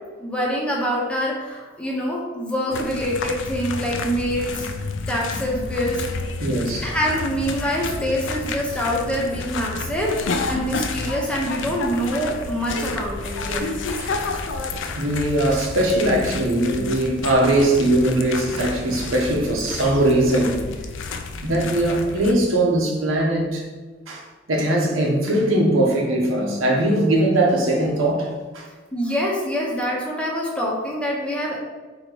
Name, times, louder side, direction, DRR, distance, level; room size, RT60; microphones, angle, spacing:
voice 1, 0.2-4.7 5.1-6.0 6.8-13.7 28.9-31.6, equal, 5° left, -3 dB, 0.7 m, -25 dB
sound 1, 2.7-22.3, left 3 dB, 65° left, 0.4 m, -30 dB
voice 2, 6.4-6.9 14.0-14.2 14.9-20.6 21.4-23.6 24.1-28.7, right 1 dB, 85° right, -1 dB, 1.0 m, -20 dB
4.0 x 2.9 x 4.5 m, 1.4 s
head